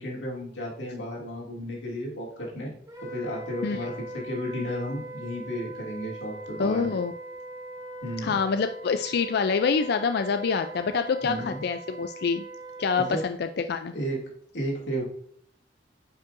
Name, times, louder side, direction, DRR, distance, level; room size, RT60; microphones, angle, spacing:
voice 1, 0.0-2.7 3.0-6.9 8.0-8.4 11.2-11.6 13.0-13.2 13.9-14.2 14.5-15.0, equal, 85° left, -3 dB, 2.4 m, -33 dB
Wind instrument woodwind instrument, 2.9-13.3, right 2 dB, 20° right, 2.7 m, -41 dB
voice 2, 6.6-7.1 8.2-12.5 12.8-13.9, left 5 dB, 60° left, 8 dB, 0.4 m, -26 dB
9.2 x 5.5 x 2.6 m, 0.65 s
head